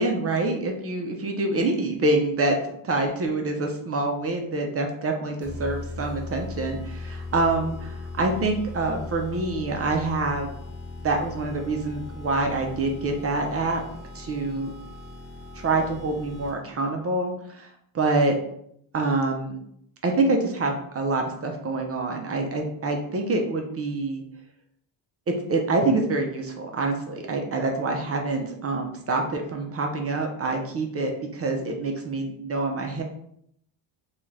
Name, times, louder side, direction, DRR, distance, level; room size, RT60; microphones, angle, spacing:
voice 1, 0.0-2.6 2.8-10.5 11.0-13.8 14.1-14.7 15.5-18.4 18.9-19.6 20.0-24.2 25.3-33.0, right 2 dB, 30° right, 2 dB, 0.4 m, -26 dB
sound 1, 5.4-16.8, left 3 dB, 5° right, 1.1 m, -38 dB
2.5 x 2.3 x 3.1 m, 0.70 s
cardioid pair, 100°, 48 cm